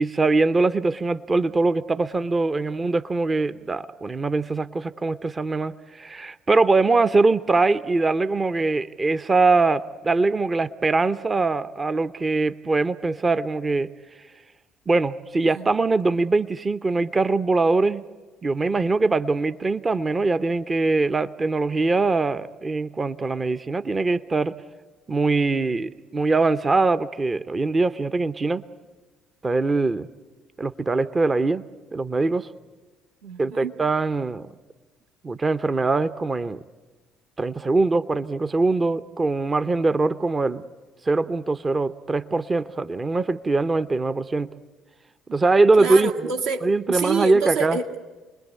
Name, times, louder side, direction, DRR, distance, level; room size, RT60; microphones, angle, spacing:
voice 1, 0.0-13.9 14.9-18.0 18.4-24.5 25.1-28.6 29.4-30.1 30.6-31.6 31.9-32.5 33.4-34.5 35.2-36.6 37.4-40.6 41.0-44.5 45.3-46.3 46.6-47.8, right 3 dB, 30° right, 14 dB, 0.8 m, -22 dB
voice 2, 33.2-33.7 45.8-48.0, right 4 dB, 70° right, 1 dB, 1.8 m, -28 dB
29.0 x 21.5 x 8.2 m, 1.3 s
figure-of-eight pair, 50°, 0 cm